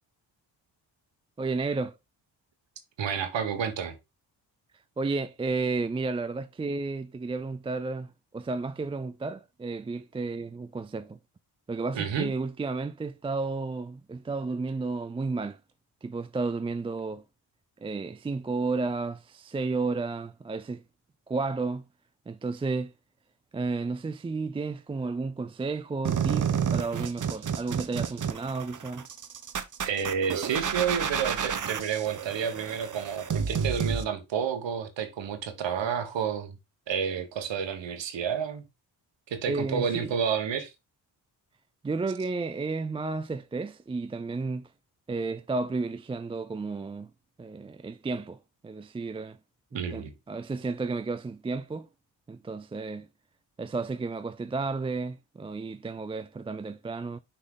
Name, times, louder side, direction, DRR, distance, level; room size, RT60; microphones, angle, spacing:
voice 1, 1.4-2.0 5.0-11.2 11.7-15.6 16.0-17.2 17.8-20.8 21.3-21.8 22.3-22.9 23.5-29.1 39.5-40.1 41.8-44.7 45.1-47.1 47.4-48.4 48.6-49.4 49.9-51.9 52.3-53.1 53.6-57.2, right 3 dB, 15° right, 0.3 m, -32 dB
voice 2, 3.0-3.9 11.9-12.3 29.8-36.6 36.9-38.6 39.3-40.7 49.7-50.1, right 7 dB, 65° right, 1.4 m, -30 dB
sound 1, 26.0-34.0, right 7 dB, 40° right, 0.9 m, -30 dB
6.2 x 4.1 x 3.8 m
supercardioid pair, 50°, 47 cm